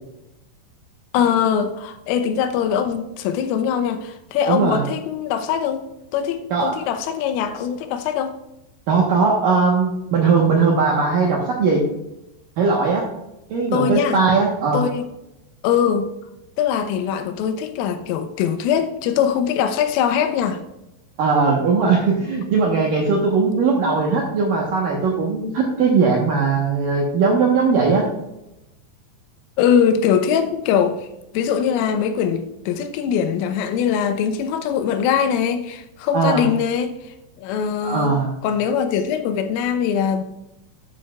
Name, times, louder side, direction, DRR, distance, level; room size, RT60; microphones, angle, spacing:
voice 1, 1.1-5.8 6.1-8.3 13.7-14.2 14.7-15.1 15.6-16.1 16.6-20.6 29.6-31.1 31.3-37.0 37.4-38.2 38.4-40.2, left 8 dB, 90° left, 3.4 m, -22 dB
voice 2, 4.5-4.9 6.5-6.7 8.9-11.8 12.6-13.1 13.5-14.8 21.2-28.1 36.1-36.5 37.8-38.3, right 4 dB, 75° right, 2.0 m, -19 dB
12.0 x 9.2 x 2.4 m
omnidirectional pair, 5.7 m